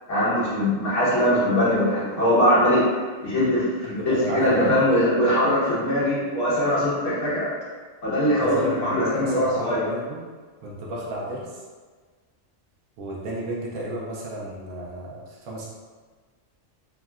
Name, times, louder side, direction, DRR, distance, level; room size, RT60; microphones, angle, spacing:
voice 1, 0.1-2.9 3.2-7.5 8.0-9.8, equal, 65° left, -10 dB, 1.5 m, -21 dB
voice 2, 3.8-4.7 8.4-10.2 10.6-11.6 13.0-15.7, right 1 dB, 75° right, -4 dB, 1.0 m, -32 dB
3.6 x 2.1 x 2.3 m, 1.5 s
omnidirectional pair, 1.3 m